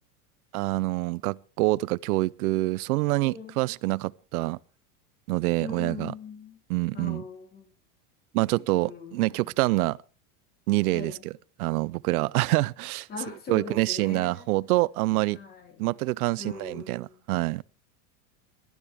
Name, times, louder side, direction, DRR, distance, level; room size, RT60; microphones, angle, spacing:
voice 1, 0.5-4.6 5.3-6.1 6.7-7.2 8.3-10.0 10.7-11.1 11.6-13.1 13.5-15.4 15.8-17.6, right 20 dB, 80° right, 0.7 m, -26 dB
voice 2, 3.2-3.6 5.6-6.6 6.9-7.7 8.8-9.6 10.9-11.3 13.1-14.5 15.3-15.9 16.4-17.2, left 5 dB, 20° left, 3.0 m, -41 dB
22.5 x 12.0 x 3.4 m
supercardioid pair, 175°, 44 cm